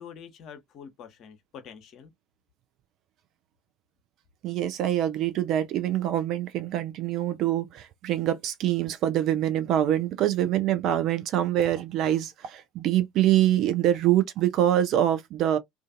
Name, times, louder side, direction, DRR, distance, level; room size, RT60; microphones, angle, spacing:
voice 1, 0.0-2.1, left 7 dB, 45° left, 0.8 m, -45 dB
voice 2, 4.4-15.6, right 12 dB, 45° right, 0.4 m, -25 dB
2.4 x 2.4 x 2.4 m
figure-of-eight pair, 70°, 0 cm